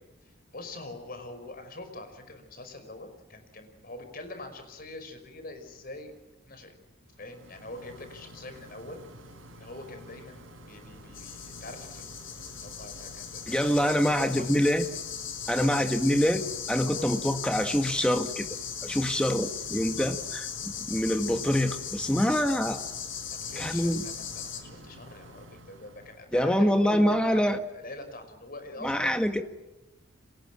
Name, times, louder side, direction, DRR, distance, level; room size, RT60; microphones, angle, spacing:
voice 1, 0.2-6.1 6.5-6.8 7.2-9.0 9.6-14.5 15.6-15.9 16.9-17.2 23.3-29.2, left 2 dB, 45° left, 8 dB, 5.4 m, -44 dB
sound 1, 7.1-26.5, right 1 dB, 75° right, 7.3 m, -49 dB
sound 2, 11.1-24.6, left 8 dB, 70° left, 6.2 m, -38 dB
voice 2, 13.5-14.9 15.5-18.5 18.8-22.8 23.5-24.0 26.3-27.6 28.8-29.4, equal, 5° left, 7 dB, 1.7 m, -25 dB
30.0 x 26.0 x 6.2 m, 1.1 s
head